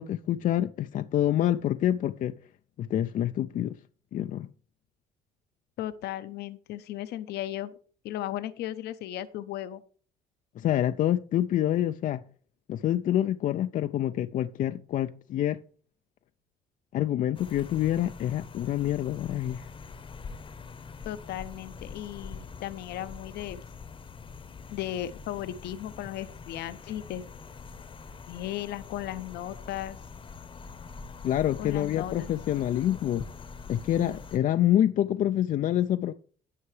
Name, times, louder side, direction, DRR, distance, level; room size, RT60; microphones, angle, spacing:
voice 1, 0.0-2.3 2.8-3.8 4.1-4.5 10.6-12.2 12.7-15.6 16.9-19.7 31.2-33.2 33.7-36.1, left 12 dB, 50° left, 0.4 m, -27 dB
voice 2, 5.8-7.7 8.0-9.8 21.0-23.6 24.7-27.3 28.3-30.0 31.6-32.3, left 12 dB, 75° left, 0.8 m, -36 dB
sound 1, 17.3-34.4, left 5 dB, 30° left, 0.9 m, -44 dB
17.0 x 5.6 x 3.2 m
cardioid pair, 110°, 17 cm